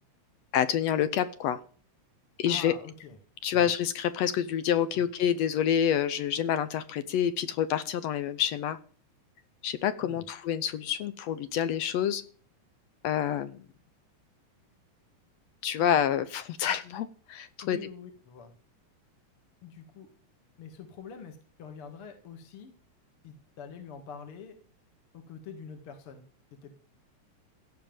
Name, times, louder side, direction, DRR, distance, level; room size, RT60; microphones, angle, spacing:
voice 1, 0.5-1.6 2.4-2.7 3.4-8.8 9.6-12.2 13.0-13.6 15.6-17.8, left 9 dB, 70° left, 13 dB, 1.7 m, -28 dB
voice 2, 2.5-3.2 3.5-3.7 4.9-5.0 10.0-10.3 17.6-18.5 19.6-20.1 20.6-22.7 23.2-24.6 25.1-26.2 26.5-26.8, left 6 dB, 50° left, 5 dB, 2.4 m, -45 dB
16.0 x 5.8 x 8.9 m, 0.43 s
omnidirectional pair, 3.5 m